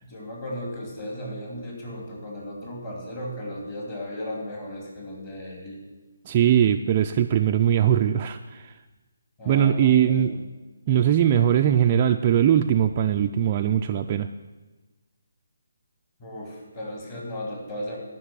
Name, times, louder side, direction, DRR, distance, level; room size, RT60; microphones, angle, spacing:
voice 1, 0.0-5.8 9.4-10.5 16.2-18.0, left 1 dB, 20° left, -2 dB, 2.5 m, -36 dB
voice 2, 6.3-8.7 9.5-10.3 10.9-14.3, right 10 dB, 20° right, 4 dB, 0.3 m, -20 dB
11.5 x 6.0 x 8.9 m, 1.2 s
hypercardioid pair, 170°, 0 cm